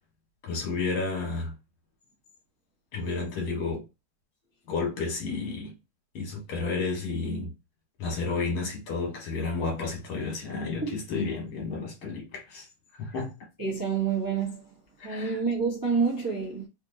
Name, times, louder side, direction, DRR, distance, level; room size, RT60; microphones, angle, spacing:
voice 1, 0.5-1.5 2.9-3.8 4.7-5.7 6.1-7.5 8.0-12.7 13.0-13.3 15.0-15.4, left 4 dB, 80° left, 2.4 m, -31 dB
voice 2, 13.6-14.6 15.0-16.7, right 5 dB, 20° right, 0.5 m, -28 dB
4.3 x 2.8 x 2.6 m
omnidirectional pair, 2.2 m